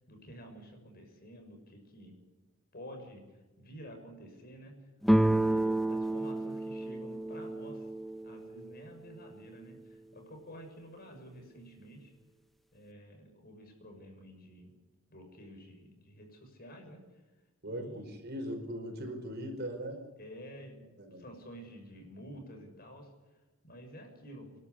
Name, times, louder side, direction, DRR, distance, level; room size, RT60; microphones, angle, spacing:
voice 1, 0.0-2.1 2.7-4.8 5.2-7.9 8.2-12.1 12.7-14.7 15.1-17.2 17.6-18.5 20.2-20.9 21.2-23.1 23.6-24.5, equal, 45° left, 3 dB, 6.7 m, -50 dB
sound 1, 5.0-8.7, right 1 dB, ahead, 0.7 m, -30 dB
voice 2, 17.6-20.0 21.0-21.3, equal, 50° right, 4 dB, 5.0 m, -39 dB
27.5 x 12.5 x 9.9 m, 1.2 s
head